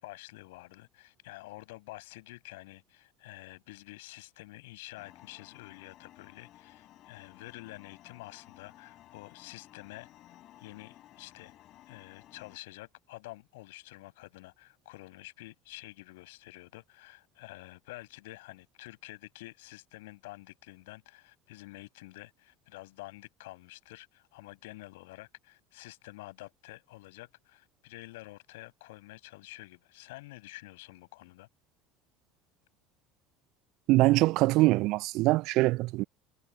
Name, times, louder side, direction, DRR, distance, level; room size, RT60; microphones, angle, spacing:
voice 1, 0.0-10.1 10.6-11.5 11.9-31.5, left 20 dB, 65° left, 7.2 m, -49 dB
sound 1, 5.0-12.6, left 14 dB, 45° left, 5.5 m, -56 dB
voice 2, 33.9-36.0, right 20 dB, 55° right, 0.6 m, -23 dB
figure-of-eight pair, 65°, 0 cm